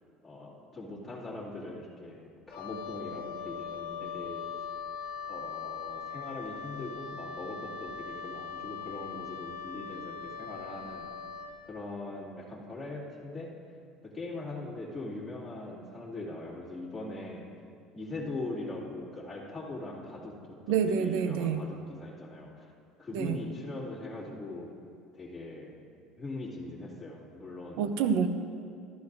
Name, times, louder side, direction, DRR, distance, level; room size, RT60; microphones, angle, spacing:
voice 1, 0.2-4.5 5.3-11.1 11.6-13.5 14.0-17.4 17.9-22.7 23.0-24.7 25.1-25.7 26.2-27.8, left 2 dB, 10° left, -8 dB, 2.5 m, -41 dB
Wind instrument woodwind instrument, 2.5-11.6, left 6 dB, 80° left, 1.0 m, -40 dB
voice 2, 20.7-21.6 23.1-23.4 27.8-28.3, right 7 dB, 75° right, 8 dB, 0.7 m, -27 dB
14.5 x 13.0 x 2.7 m, 2.3 s
cardioid pair, 125°, 0 cm